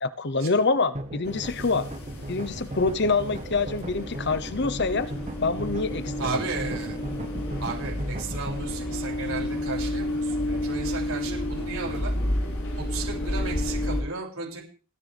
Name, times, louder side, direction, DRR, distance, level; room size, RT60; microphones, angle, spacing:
voice 1, 0.0-1.9 2.3-5.1 5.4-6.4, left 3 dB, 50° left, 14 dB, 0.9 m, -26 dB
sound 1, 0.9-8.6, right 1 dB, 30° right, 1.3 m, -37 dB
sound 2, 1.2-14.0, left 1 dB, 75° left, 4.2 m, -31 dB
voice 2, 6.2-7.0 7.6-12.1 12.8-14.6, right 4 dB, 75° right, -2 dB, 6.8 m, -34 dB
29.5 x 10.0 x 3.5 m, 0.37 s
head